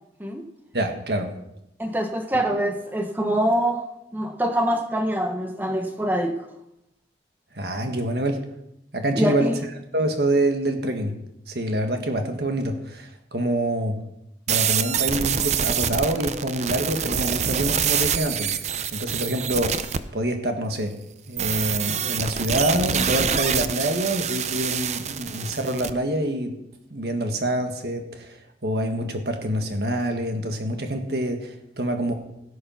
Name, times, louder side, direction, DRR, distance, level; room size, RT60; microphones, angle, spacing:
voice 1, 0.7-1.3 7.6-8.4 8.9-9.5 9.9-11.1 11.5-14.0 14.5-21.0 21.3-26.6 26.9-28.4 28.6-32.1, right 1 dB, 65° right, 5 dB, 1.7 m, -26 dB
voice 2, 1.8-3.8 4.1-6.4 9.1-9.6, right 1 dB, 10° right, 5 dB, 1.1 m, -24 dB
sound 1, 14.5-20.0 21.4-25.9, right 8 dB, 40° right, 0.6 m, -26 dB
16.5 x 6.6 x 5.8 m, 0.85 s
head